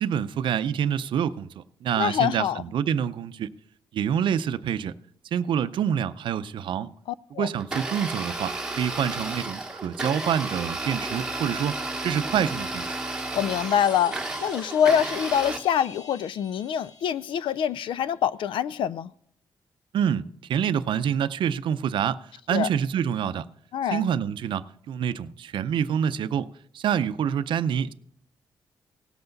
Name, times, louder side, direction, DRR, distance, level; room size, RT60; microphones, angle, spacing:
voice 1, 0.0-3.5 3.9-4.9 5.3-6.9 7.4-12.9 19.9-20.2 20.5-22.2 22.5-23.5 23.9-26.5 26.7-27.9, right 8 dB, 75° right, 0.5 m, -27 dB
voice 2, 2.0-2.6 7.3-7.5 13.3-19.1 22.5-22.7 23.7-24.1, left 9 dB, 80° left, 0.4 m, -25 dB
Domestic sounds home sounds, 7.6-15.6, right 2 dB, 10° right, 1.1 m, -32 dB
sound 1, 13.2-18.2, left 4 dB, 50° left, 1.3 m, -48 dB
18.0 x 8.0 x 3.9 m
wide cardioid pair, 165°, 8 cm